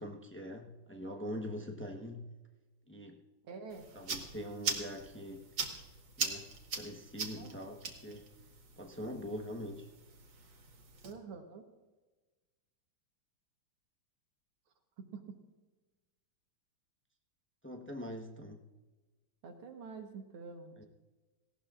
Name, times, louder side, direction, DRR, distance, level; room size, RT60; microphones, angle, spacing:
voice 1, 0.0-2.3 2.9-3.2 3.9-5.5 6.2-6.5 6.7-8.2 8.8-9.9 17.6-18.6 20.8-20.9, equal, 20° left, 1 dB, 0.3 m, -43 dB
voice 2, 3.4-3.8 7.3-7.6 11.0-11.6 15.1-15.2 19.4-20.9, right 5 dB, 75° right, 3 dB, 2.1 m, -47 dB
sound 1, 3.7-11.1, right 5 dB, 55° right, 2.1 m, -41 dB
18.0 x 17.5 x 2.5 m, 1.2 s
omnidirectional pair, 2.4 m